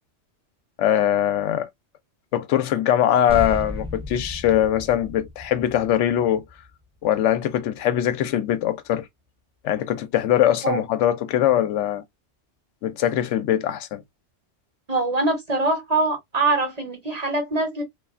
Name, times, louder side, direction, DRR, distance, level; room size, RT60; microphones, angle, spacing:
voice 1, 0.8-1.7 2.3-6.4 7.0-9.1 9.6-12.0 12.8-14.0, left 11 dB, 90° left, 0.9 m, -22 dB
sound 1, 3.3-8.1, left 2 dB, 5° right, 0.5 m, -35 dB
voice 2, 14.9-17.8, right 2 dB, 35° right, 1.0 m, -23 dB
3.2 x 2.3 x 2.3 m
omnidirectional pair, 1.2 m